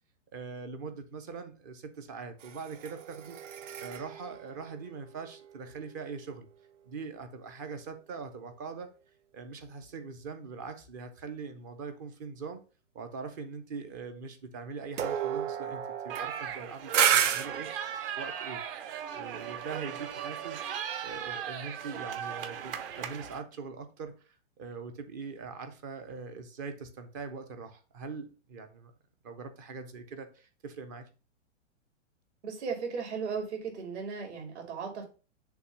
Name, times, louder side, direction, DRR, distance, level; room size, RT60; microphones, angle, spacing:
voice 1, 0.3-3.4 3.8-6.5 6.9-8.9 9.3-12.6 12.9-18.6 19.1-28.9 29.2-31.1, right 5 dB, 20° right, 0.4 m, -42 dB
sound 1, 2.4-5.9 15.0-17.5, right 9 dB, 85° right, 0.8 m, -31 dB
sound 2, 16.1-23.4, right 9 dB, 50° right, 0.9 m, -38 dB
voice 2, 32.4-35.1, right 5 dB, 65° right, 2.9 m, -36 dB
6.7 x 2.7 x 5.6 m
hypercardioid pair, 150°, 36 cm